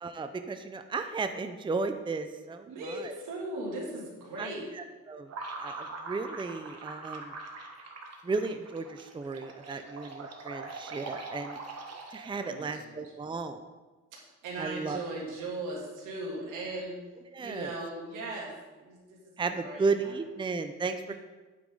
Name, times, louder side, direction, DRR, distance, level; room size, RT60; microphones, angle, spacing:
voice 1, 0.0-3.1 4.4-4.5 4.8-5.3 5.6-7.3 8.2-11.6 12.1-13.6 14.6-15.0 17.3-17.7 19.4-21.0, right 4 dB, 15° right, 7 dB, 0.6 m, -34 dB
voice 2, 2.7-4.7 12.4-13.1 14.1-17.0 17.4-20.2 21.0-21.2, right 2 dB, 85° right, -3 dB, 2.9 m, -38 dB
sound 1, 5.3-12.5, right 3 dB, 55° right, 1.6 m, -42 dB
8.9 x 8.5 x 3.9 m, 1.3 s
cardioid pair, 90°, 30 cm